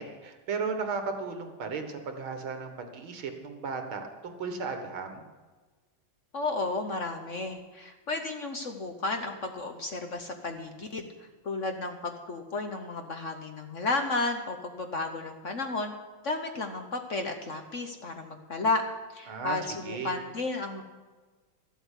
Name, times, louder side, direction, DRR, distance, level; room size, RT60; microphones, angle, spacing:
voice 1, 0.0-5.2 19.3-19.6 19.8-20.1, right 5 dB, 85° right, 5 dB, 2.3 m, -35 dB
voice 2, 6.3-11.1 11.4-15.9 16.2-18.8 19.1-20.8, left 3 dB, 50° left, 5 dB, 1.0 m, -33 dB
13.5 x 8.0 x 8.2 m, 1.3 s
omnidirectional pair, 2.2 m